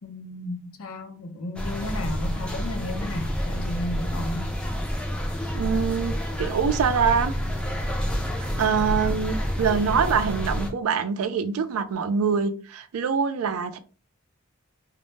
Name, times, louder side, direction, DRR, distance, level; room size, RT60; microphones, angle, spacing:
voice 1, 0.0-4.5, left 1 dB, 90° left, 0.5 m, -33 dB
sound 1, 1.6-10.7, equal, 5° left, 0.4 m, -28 dB
voice 2, 5.5-7.3 8.4-13.8, right 6 dB, 90° right, 0.4 m, -24 dB
2.1 x 2.0 x 3.1 m
head